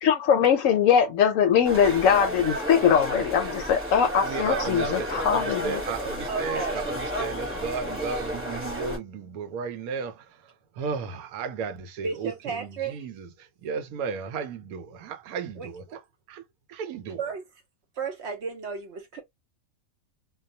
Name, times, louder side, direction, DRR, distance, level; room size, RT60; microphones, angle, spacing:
voice 1, 0.0-5.8, left 8 dB, 70° left, 0.9 m, -21 dB
sound 1, 1.6-9.0, equal, 10° right, 1.0 m, -32 dB
voice 2, 4.2-10.3 10.8-13.3 13.6-16.0 16.3-16.4 16.7-17.2, right 6 dB, 85° right, 1.0 m, -34 dB
voice 3, 6.3-6.8 12.0-13.0 15.6-15.7 16.9-17.4 18.0-19.2, right 5 dB, 60° right, 0.9 m, -33 dB
2.3 x 2.2 x 2.6 m
omnidirectional pair, 1.5 m